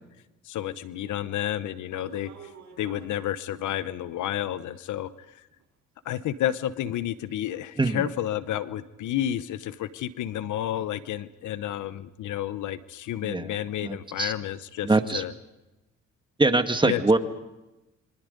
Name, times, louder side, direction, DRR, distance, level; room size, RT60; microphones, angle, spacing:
voice 1, 0.5-2.3 2.8-5.1 6.0-15.3 16.8-17.0, left 11 dB, 80° left, 15 dB, 1.0 m, -31 dB
sound 1, 1.8-3.2 4.2-4.3 4.9-5.0 5.5-5.6 6.2-6.3 6.9-7.0 7.3-7.4, right 5 dB, 70° right, 5.8 m, -48 dB
voice 2, 7.8-8.1 13.2-13.6 13.8-14.3 14.8-15.2 16.4-17.2, right 2 dB, 15° right, 8 dB, 1.7 m, -23 dB
27.0 x 24.5 x 5.3 m, 1.0 s
cardioid pair, 90°, 30 cm